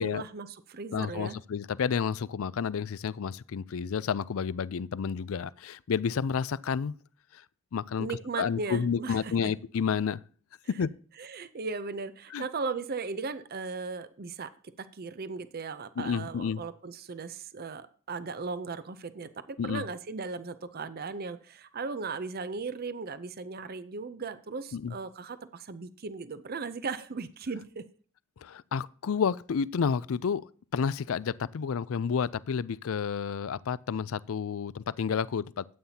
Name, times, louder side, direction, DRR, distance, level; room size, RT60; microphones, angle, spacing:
voice 1, 0.0-1.4 8.0-9.3 11.2-14.5 14.8-27.8, right 4 dB, 45° right, 0.6 m, -37 dB
voice 2, 0.9-6.9 7.3-7.4 7.7-8.1 8.4-10.2 10.8-10.9 12.3-12.5 16.0-16.6 19.6-19.8 24.7-24.9 28.4-35.7, left 6 dB, 65° left, 0.4 m, -30 dB
13.0 x 8.8 x 2.8 m
head